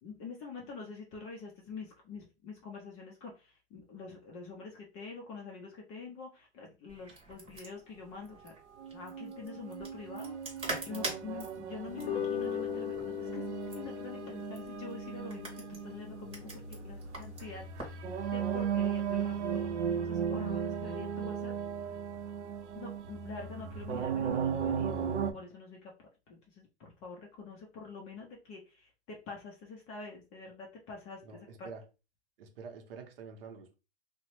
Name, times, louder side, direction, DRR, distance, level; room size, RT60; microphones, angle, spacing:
voice 1, 0.0-8.5 8.9-10.4 10.8-13.4 13.7-17.6 18.0-19.7 20.0-21.5 22.7-25.0 25.3-25.9 26.3-31.2, left 4 dB, 20° left, 0.4 m, -46 dB
sound 1, 6.9-18.0, right 2 dB, 15° right, 0.8 m, -45 dB
sound 2, 8.8-25.3, right 7 dB, 90° right, 0.5 m, -36 dB
sound 3, 11.9-18.4, left 9 dB, 70° left, 0.6 m, -40 dB
voice 2, 31.2-31.9 32.4-33.7, right 5 dB, 60° right, 0.7 m, -47 dB
2.8 x 2.0 x 2.9 m
hypercardioid pair, 135°, 34 cm